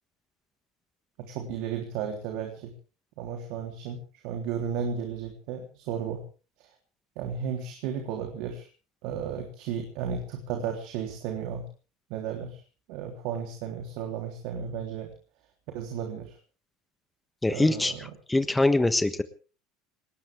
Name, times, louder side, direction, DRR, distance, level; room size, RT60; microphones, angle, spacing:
voice 1, 1.2-2.7 3.2-6.2 6.6-6.7 7.1-8.7 9.0-11.6 12.1-12.6 12.9-15.1 15.7-16.4 17.5-18.0, right 7 dB, 70° right, 3 dB, 3.5 m, -34 dB
voice 2, 17.4-19.2, left 2 dB, 10° left, 10 dB, 1.3 m, -24 dB
20.5 x 19.0 x 3.6 m, 0.37 s
supercardioid pair, 100°, 0 cm